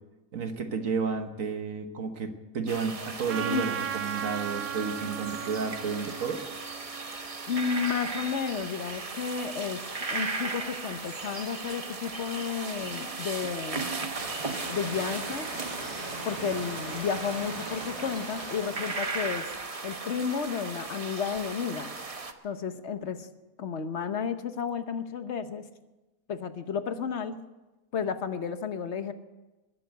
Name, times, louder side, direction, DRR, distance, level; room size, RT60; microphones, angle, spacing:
voice 1, 0.3-6.4 16.4-16.5, right 5 dB, 70° right, 7 dB, 1.6 m, -32 dB
sound 1, 2.7-22.3, right 3 dB, 30° right, 0.9 m, -37 dB
Trumpet, 3.3-7.9, right 9 dB, 85° right, 1.3 m, -37 dB
voice 2, 7.5-9.8 10.1-13.9 14.7-15.5 16.2-19.5 19.8-21.9 22.4-23.3 23.6-25.6 26.3-27.4 27.9-29.1, left 6 dB, 55° left, 10 dB, 1.2 m, -32 dB
Stream / Liquid, 14.1-19.5, right 1 dB, 50° right, 3.8 m, -40 dB
21.0 x 7.7 x 8.0 m, 1.1 s
omnidirectional pair, 1.5 m